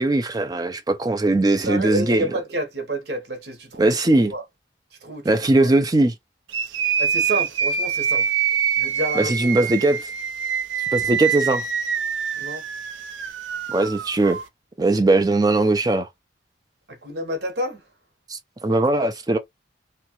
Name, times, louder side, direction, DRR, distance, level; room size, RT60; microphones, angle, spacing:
voice 1, 0.0-2.3 3.8-4.3 5.2-6.1 9.2-10.0 10.9-11.6 13.7-14.4 14.8-16.1 18.3-19.4, right 2 dB, 20° right, 0.4 m, -20 dB
voice 2, 1.6-3.9 4.3-4.4 5.0-5.3 5.6-5.7 6.9-8.3 8.8-9.7 12.4-12.6 16.9-17.8, right 1 dB, 60° right, 1.0 m, -29 dB
sound 1, 6.5-14.4, right 7 dB, 80° right, 0.6 m, -25 dB
2.9 x 2.2 x 2.9 m
head